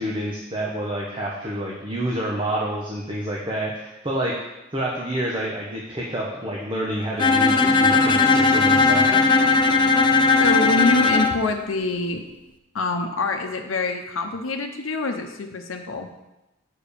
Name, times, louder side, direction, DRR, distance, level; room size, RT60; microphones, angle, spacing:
voice 1, 0.0-4.3 4.7-9.1, right 1 dB, 25° right, -3 dB, 1.1 m, -28 dB
Bowed string instrument, 7.2-11.4, left 4 dB, 25° left, 0.5 m, -17 dB
voice 2, 10.4-12.3 12.7-16.1, left 3 dB, 85° left, 4 dB, 0.8 m, -25 dB
6.8 x 5.0 x 6.8 m, 0.98 s
head